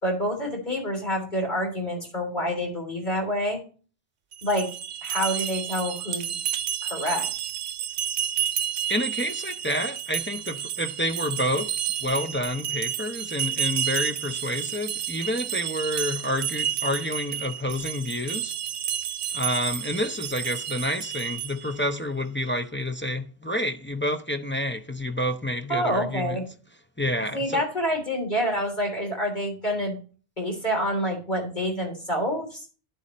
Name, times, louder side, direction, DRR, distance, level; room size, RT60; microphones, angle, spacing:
voice 1, 0.0-3.6 4.4-4.7 5.0-6.4 6.8-7.5 25.7-26.5 27.3-30.0 30.4-32.6, equal, 45° left, 3.5 m, -27 dB
sound 1, 4.3-21.8, right 10 dB, 75° right, 0.9 m, -31 dB
voice 2, 8.9-11.7 12.0-18.5 19.3-26.5 27.0-27.6, left 1 dB, 15° left, 0.5 m, -29 dB
11.0 x 8.3 x 3.1 m
omnidirectional pair, 1.1 m